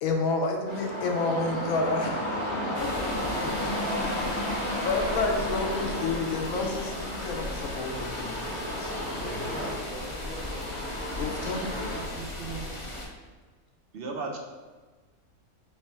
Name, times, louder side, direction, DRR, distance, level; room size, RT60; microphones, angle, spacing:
voice 1, 0.0-2.5 2.8-3.5 4.0-4.3 4.8-9.2 11.2-11.8, left 3 dB, 75° left, 2 dB, 1.0 m, -30 dB
sound 1, 0.7-12.0, left 1 dB, 20° left, 1.1 m, -33 dB
sound 2, 2.7-13.1, left 1 dB, 40° left, 0.5 m, -38 dB
voice 2, 9.2-11.6, equal, 35° right, -10 dB, 1.6 m, -42 dB
voice 3, 11.5-12.7 13.9-14.4, right 4 dB, 60° right, 1 dB, 0.6 m, -37 dB
3.3 x 3.2 x 4.2 m, 1.4 s
omnidirectional pair, 1.5 m